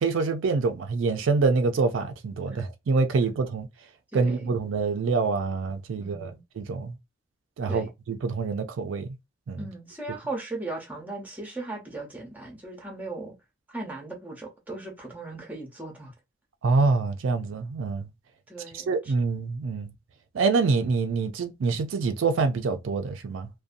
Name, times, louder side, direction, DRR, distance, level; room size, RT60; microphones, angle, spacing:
voice 1, 0.0-3.7 4.1-7.0 7.6-9.1 9.5-9.7 16.6-18.1 18.7-19.9 20.3-23.5, right 4 dB, 85° right, 0.4 m, -26 dB
voice 2, 4.1-4.5 6.0-6.4 7.7-7.9 9.6-13.3 13.7-16.1 18.5-19.1, right 2 dB, 10° right, 0.7 m, -37 dB
2.6 x 2.2 x 2.4 m
head